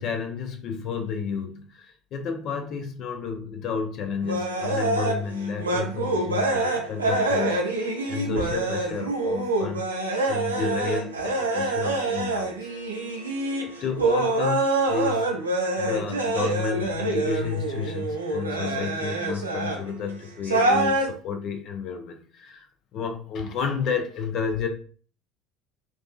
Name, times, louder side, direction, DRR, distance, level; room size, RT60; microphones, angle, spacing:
voice 1, 0.0-9.9 10.3-12.6 13.8-15.3 15.8-22.7 22.9-24.7, left 5 dB, 50° left, 5 dB, 0.4 m, -31 dB
sound 1, 4.2-19.9 20.4-21.1, right 2 dB, 85° right, 0.4 m, -26 dB
2.5 x 2.3 x 2.3 m, 0.42 s
figure-of-eight pair, 65°, 0 cm